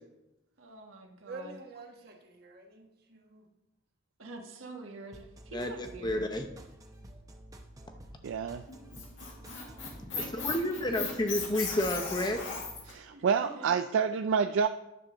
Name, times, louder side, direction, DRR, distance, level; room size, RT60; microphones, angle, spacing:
voice 1, 0.6-1.6 2.0-2.1 4.2-6.3 10.1-11.3 13.1-13.8, right 3 dB, 90° right, 3 dB, 1.4 m, -47 dB
voice 2, 1.3-3.4 7.8-8.3, right 2 dB, 50° right, 2 dB, 1.3 m, -48 dB
sound 1, 5.1-12.8, right 1 dB, 15° right, 0.9 m, -50 dB
voice 3, 5.5-6.4 10.1-12.4, left 1 dB, 20° left, 5 dB, 0.7 m, -31 dB
voice 4, 8.2-8.6 12.9-14.7, right 6 dB, 70° right, 9 dB, 0.3 m, -28 dB
Squeak, 8.7-12.9, left 5 dB, 75° left, 2.0 m, -37 dB
10.5 x 4.3 x 6.3 m, 0.93 s
head